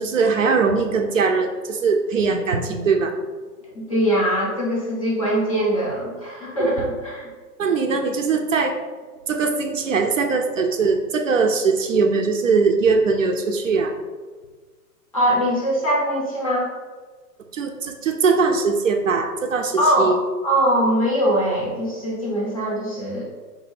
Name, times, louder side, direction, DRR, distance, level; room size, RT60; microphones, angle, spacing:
voice 1, 0.0-3.1 6.6-6.7 7.6-8.8 9.3-13.9 17.5-20.2, right 4 dB, 55° right, 5 dB, 0.5 m, -21 dB
voice 2, 3.7-7.3 15.1-16.7 19.8-20.2 20.4-23.2, equal, 25° left, -5 dB, 0.5 m, -22 dB
3.9 x 2.6 x 4.6 m, 1.4 s
hypercardioid pair, 160°, 47 cm